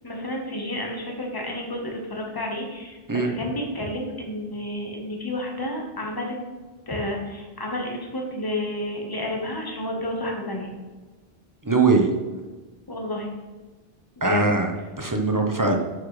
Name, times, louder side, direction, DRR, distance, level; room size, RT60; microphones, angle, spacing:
voice 1, 0.0-6.4 6.9-10.7 12.9-13.3 14.2-14.5 15.5-15.7, left 1 dB, 20° left, 0 dB, 1.4 m, -31 dB
voice 2, 11.6-12.1 14.2-15.8, right 3 dB, 20° right, 3 dB, 0.9 m, -21 dB
11.0 x 6.0 x 3.3 m, 1.3 s
omnidirectional pair, 1.0 m